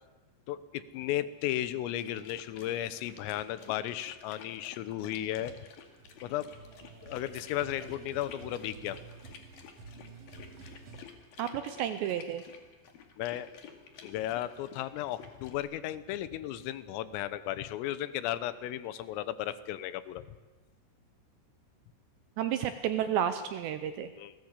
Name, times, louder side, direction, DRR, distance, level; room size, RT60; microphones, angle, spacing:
voice 1, 0.5-5.5 6.2-6.5 7.0-9.0 13.2-13.5 14.0-20.3 24.1-24.4, left 13 dB, 80° left, 14 dB, 3.7 m, -35 dB
sound 1, 2.0-15.6, left 7 dB, 55° left, 3.5 m, -52 dB
sound 2, 5.9-11.0, right 4 dB, 60° right, 1.6 m, -50 dB
voice 2, 11.4-12.4 22.4-24.1, right 9 dB, 75° right, 10 dB, 2.7 m, -31 dB
29.0 x 20.0 x 8.3 m, 1.2 s
omnidirectional pair, 6.0 m